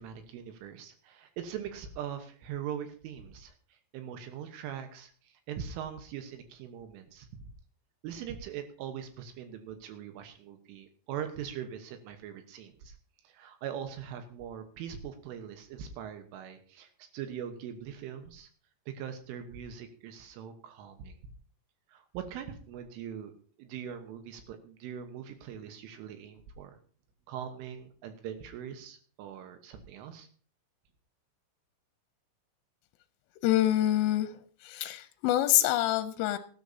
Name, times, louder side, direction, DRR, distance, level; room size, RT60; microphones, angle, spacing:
voice 1, 0.0-7.3 8.0-13.0 13.3-18.5 18.9-21.2 21.9-23.3 23.6-26.8 27.3-30.3, right 9 dB, 75° right, 3.5 m, -41 dB
voice 2, 33.4-34.3 34.6-36.4, left 14 dB, 80° left, 3.1 m, -26 dB
18.0 x 13.0 x 2.8 m
omnidirectional pair, 6.0 m